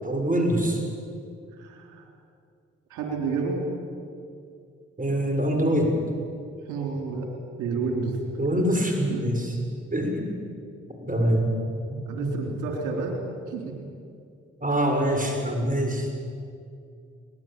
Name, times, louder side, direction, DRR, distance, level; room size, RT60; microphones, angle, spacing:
voice 1, 0.0-0.8 5.0-6.0 8.4-9.6 9.9-10.3 11.0-11.5 11.9-12.4 14.6-16.1, equal, 25° right, 3 dB, 6.9 m, -24 dB
voice 2, 1.6-2.0 2.9-3.6 6.6-7.3 7.6-8.2 9.1-9.4 12.1-13.2 13.5-13.8, right 4 dB, 85° right, 2 dB, 3.8 m, -30 dB
23.0 x 19.0 x 9.1 m, 2.4 s
supercardioid pair, 45°, 30 cm